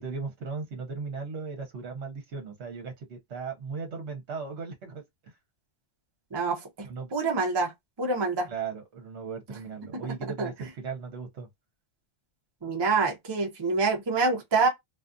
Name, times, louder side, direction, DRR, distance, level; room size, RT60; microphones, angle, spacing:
voice 1, 0.0-5.3 6.8-7.1 8.5-11.5, right 5 dB, 60° right, 1.0 m, -37 dB
voice 2, 6.3-7.7 8.0-8.5 9.9-10.0 10.4-10.5 12.6-14.7, right 4 dB, 30° right, 0.5 m, -26 dB
2.5 x 2.3 x 2.5 m
omnidirectional pair, 1.4 m